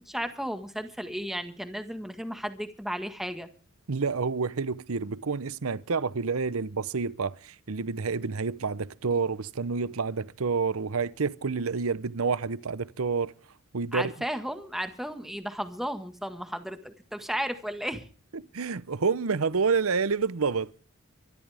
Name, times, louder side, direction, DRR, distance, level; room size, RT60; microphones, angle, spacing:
voice 1, 0.0-3.5 13.9-18.1, equal, ahead, 1.6 m, -34 dB
voice 2, 3.9-13.3 13.7-14.1 18.3-20.7, right 5 dB, 70° right, 0.8 m, -28 dB
25.0 x 13.0 x 3.5 m
head